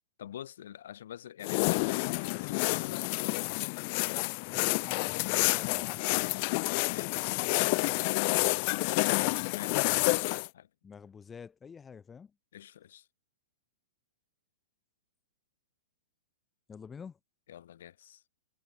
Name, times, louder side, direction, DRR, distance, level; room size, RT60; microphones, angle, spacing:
voice 1, 0.2-3.1 6.9-7.4 8.7-10.7 12.5-13.1 17.5-18.2, left 11 dB, 65° left, 2.7 m, -46 dB
sound 1, 1.4-10.5, left 32 dB, 45° left, 0.4 m, -29 dB
voice 2, 4.5-6.3 10.8-12.3 16.7-17.2, left 6 dB, 15° left, 1.2 m, -48 dB
hypercardioid pair, 115°, 0 cm